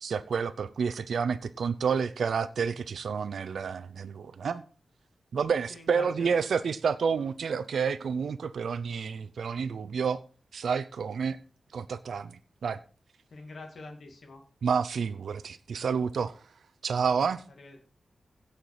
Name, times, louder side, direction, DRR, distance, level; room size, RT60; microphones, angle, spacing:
voice 1, 0.0-4.6 5.3-10.2 10.5-11.4 11.7-12.3 12.6-12.8 14.6-16.3 16.8-17.4, right 6 dB, 75° right, 0.6 m, -29 dB
voice 2, 5.7-6.3 13.3-14.4 17.6-17.9, left 3 dB, 55° left, 2.3 m, -45 dB
16.0 x 5.8 x 4.8 m
wide cardioid pair, 155°, 0 cm